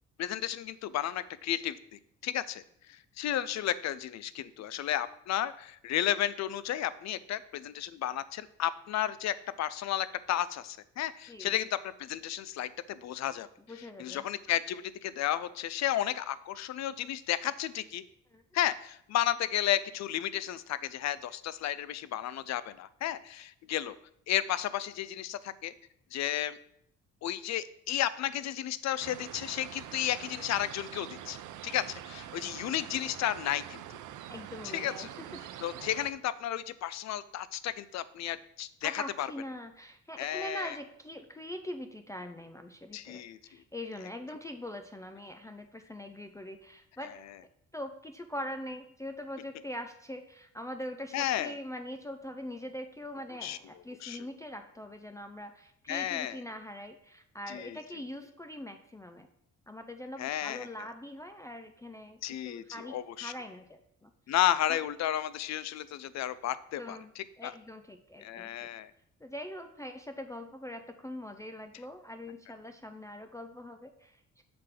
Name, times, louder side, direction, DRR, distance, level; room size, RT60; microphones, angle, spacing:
voice 1, 0.2-1.8 2.2-2.6 2.9-13.5 14.0-18.0 18.5-24.0 24.3-25.7 26.1-26.6 27.2-31.4 31.6-34.0 34.7-35.1 35.6-39.3 40.2-40.8 42.9-43.4 51.1-51.6 53.4-53.6 54.0-54.3 55.9-56.4 57.5-57.8 60.2-60.7 62.2-63.3 64.3-67.5 68.2-68.9, left 12 dB, 65° left, 17 dB, 0.5 m, -33 dB
voice 2, 13.7-14.2 18.3-18.4 34.3-35.1 38.8-47.1 47.7-59.3 59.7-62.2 62.5-64.1 66.8-67.1 67.4-68.7 69.2-74.4, left 1 dB, 10° left, 5 dB, 0.5 m, -42 dB
sound 1, 29.0-36.1, right 11 dB, 80° right, 0.6 m, -45 dB
6.7 x 3.7 x 5.7 m, 0.73 s
cardioid pair, 90°, 30 cm